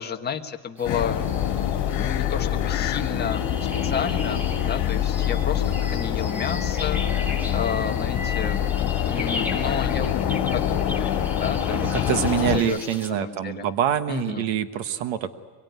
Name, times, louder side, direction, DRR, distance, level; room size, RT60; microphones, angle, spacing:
voice 1, 0.0-1.7 2.0-3.5 3.8-5.6 5.9-8.7 9.0-12.8 13.1-13.7 14.1-14.4, left 7 dB, 20° left, 2 dB, 1.5 m, -32 dB
sound 1, 0.8-12.6, left 10 dB, 65° left, 2.7 m, -25 dB
sound 2, 0.8-13.1, left 3 dB, 5° right, 2.4 m, -38 dB
voice 2, 11.7-15.3, right 10 dB, 85° right, 10 dB, 1.4 m, -25 dB
25.5 x 23.5 x 9.5 m, 1.4 s
cardioid pair, 170°, 44 cm